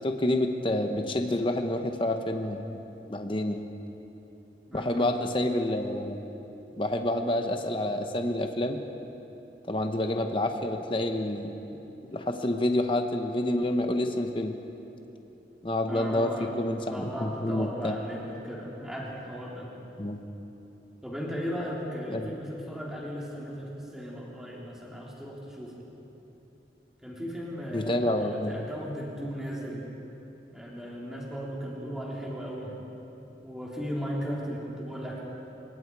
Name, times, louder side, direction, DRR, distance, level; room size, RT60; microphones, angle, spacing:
voice 1, 0.0-2.8 3.1-3.6 4.7-6.2 6.8-8.8 9.7-11.5 12.1-14.5 15.6-17.9 20.0-20.2 22.1-22.3 27.7-28.7, left 1 dB, 30° left, 5 dB, 1.0 m, -28 dB
voice 2, 4.7-5.1 15.9-16.5 16.9-19.7 21.0-25.8 27.0-29.9 30.5-32.8 33.4-35.2, equal, 5° right, -5 dB, 3.6 m, -36 dB
25.0 x 22.5 x 4.8 m, 3.0 s
head